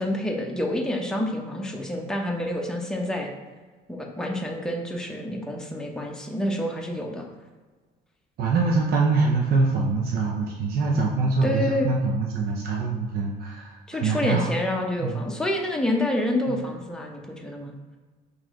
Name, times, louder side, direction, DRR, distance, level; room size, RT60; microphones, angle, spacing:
voice 1, 0.0-3.3 3.9-7.3 11.4-11.9 13.9-17.7, left 1 dB, 5° left, 0 dB, 0.7 m, -28 dB
voice 2, 8.4-14.5 15.0-15.2 16.5-16.6, right 4 dB, 65° right, 0 dB, 0.6 m, -24 dB
4.7 x 3.1 x 3.7 m, 1.4 s
cardioid pair, 110°, 17 cm